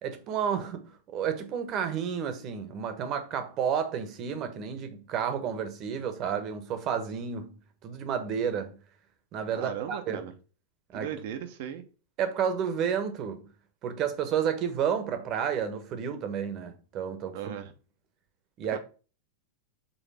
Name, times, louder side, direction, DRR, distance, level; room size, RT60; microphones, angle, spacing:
voice 1, 0.0-8.8 9.3-10.2 10.9-11.1 12.2-13.5 13.8-17.5 18.6-18.8, right 7 dB, 40° right, 1.4 m, -31 dB
voice 2, 9.5-10.3 10.9-11.8 17.3-17.7 18.7-18.8, right 10 dB, 60° right, 1.2 m, -37 dB
5.8 x 3.9 x 5.6 m
hypercardioid pair, 95°, 0 cm